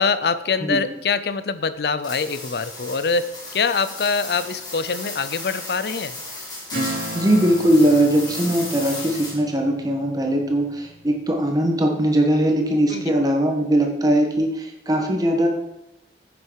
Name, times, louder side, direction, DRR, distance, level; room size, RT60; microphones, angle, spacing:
voice 1, 0.0-6.1 12.9-13.1, left 5 dB, 65° left, 14 dB, 0.5 m, -24 dB
sound 1, 2.0-9.6, left 2 dB, 25° left, 2.4 m, -35 dB
Strum, 6.7-11.6, right 1 dB, 60° right, 2.6 m, -35 dB
voice 2, 7.1-15.5, right 1 dB, 20° right, 1 dB, 1.4 m, -20 dB
10.0 x 6.7 x 4.7 m, 0.91 s
head